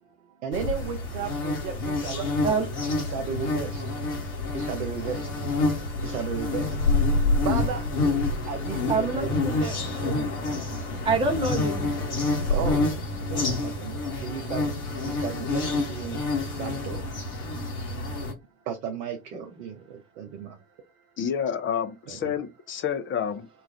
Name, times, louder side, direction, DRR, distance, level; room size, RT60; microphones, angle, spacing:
voice 1, 0.4-2.6 3.0-3.8 4.5-5.3 6.0-6.7 7.4-7.8 8.5-9.4 12.5-12.9 13.3-14.7 15.0-16.2 16.6-17.0 18.7-20.6 22.1-22.3, right 7 dB, 75° right, 0.6 m, -34 dB
sound 1, 0.5-18.3, left 2 dB, 75° left, 1.0 m, -27 dB
voice 2, 8.9-10.3 11.0-11.9, right 4 dB, 15° right, 0.6 m, -27 dB
voice 3, 21.2-23.5, left 8 dB, 30° left, 0.5 m, -29 dB
2.3 x 2.2 x 3.5 m
figure-of-eight pair, 45°, 43 cm